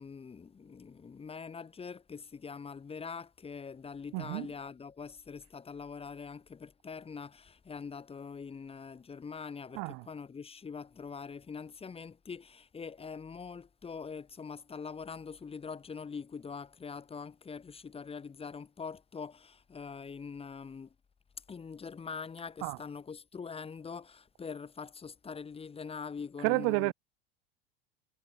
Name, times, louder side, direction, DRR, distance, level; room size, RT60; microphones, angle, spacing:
voice 1, 0.0-20.9 21.5-26.9, left 5 dB, 20° left, 1.5 m, -43 dB
voice 2, 4.1-4.5 9.7-10.0 22.6-22.8 26.4-26.9, right 37 dB, 55° right, 0.7 m, -30 dB
hypercardioid pair, 85°, 29 cm